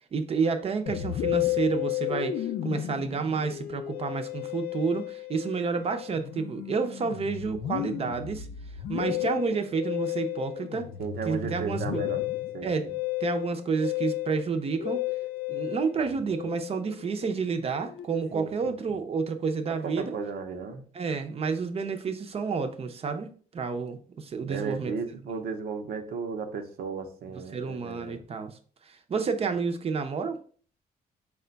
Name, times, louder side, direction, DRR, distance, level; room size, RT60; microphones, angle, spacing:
voice 1, 0.1-8.5 8.9-10.9 11.2-12.1 12.6-12.9 13.2-15.0 15.5-20.2 20.9-24.9 25.3-25.4 27.5-28.6 28.8-30.4, right 5 dB, 40° right, 0.6 m, -30 dB
Musical instrument, 0.9-18.5, left 14 dB, 80° left, 0.4 m, -33 dB
voice 2, 11.0-12.2 12.5-12.9 18.3-19.0 19.8-20.8 24.5-28.2, right 5 dB, 85° right, 0.7 m, -35 dB
4.8 x 2.3 x 3.8 m
cardioid pair, 110°, 16 cm